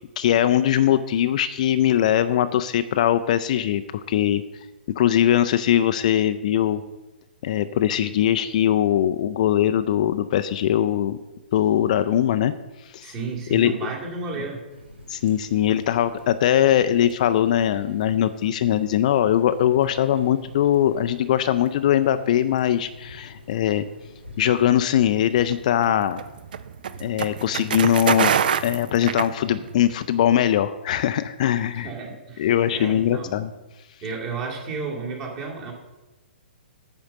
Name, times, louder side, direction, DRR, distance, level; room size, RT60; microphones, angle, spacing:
voice 1, 0.2-4.4 5.0-6.8 7.4-11.2 11.5-12.5 12.9-13.1 13.5-13.7 15.1-23.9 24.4-26.2 27.0-28.3 28.6-31.9 32.4-33.5, left 11 dB, 40° left, 11 dB, 0.3 m, -21 dB
voice 2, 13.0-14.6 31.8-33.4 34.0-35.7, right 4 dB, 30° right, -2 dB, 2.0 m, -32 dB
Water tap faucet, 14.7-25.4, left 3 dB, 75° right, 1.6 m, -47 dB
sound 1, 25.4-29.9, right 8 dB, 50° right, 0.4 m, -25 dB
8.9 x 5.1 x 5.3 m, 1.1 s
figure-of-eight pair, 120°, 6 cm